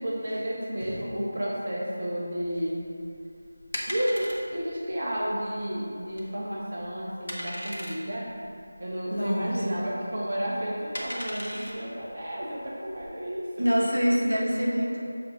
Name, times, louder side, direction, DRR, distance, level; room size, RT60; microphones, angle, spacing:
voice 1, 0.0-2.8 3.9-8.3 8.8-13.7, equal, 45° right, -5 dB, 1.2 m, -32 dB
sound 1, 2.5-13.1, equal, 60° left, 1.2 m, -39 dB
voice 2, 9.1-9.8 13.6-15.0, equal, 85° right, -3 dB, 1.5 m, -26 dB
7.0 x 4.0 x 5.1 m, 2.5 s
figure-of-eight pair, 165°, 0 cm